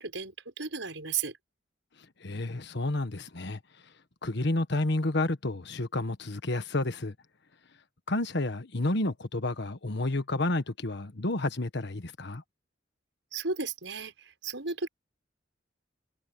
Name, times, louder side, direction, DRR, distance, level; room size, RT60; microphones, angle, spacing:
voice 1, 0.0-1.4 13.3-14.9, right 5 dB, 80° right, 6.0 m, -34 dB
voice 2, 2.2-3.6 4.2-7.1 8.1-12.4, left 2 dB, 65° left, 1.5 m, -30 dB
head